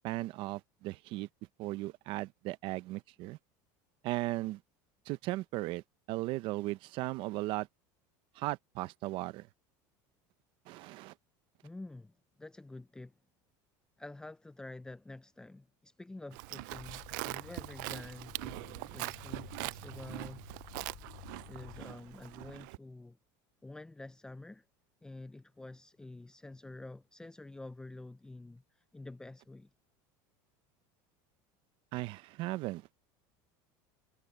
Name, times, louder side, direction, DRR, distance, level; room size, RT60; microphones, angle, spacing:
voice 1, 0.0-1.3 1.6-3.4 4.0-4.6 5.1-5.8 6.1-7.7 8.4-9.5 10.7-11.1 31.9-32.9, right 19 dB, 55° right, 0.8 m, -36 dB
voice 2, 11.6-13.1 14.0-20.5 21.5-23.2 23.6-24.6 25.0-29.7, left 2 dB, 5° left, 0.6 m, -48 dB
Livestock farm animals working animals, 16.3-22.8, right 24 dB, 80° right, 0.4 m, -42 dB
sound 1, 16.7-21.9, left 18 dB, 50° left, 1.2 m, -53 dB
cardioid pair, 145°, 10 cm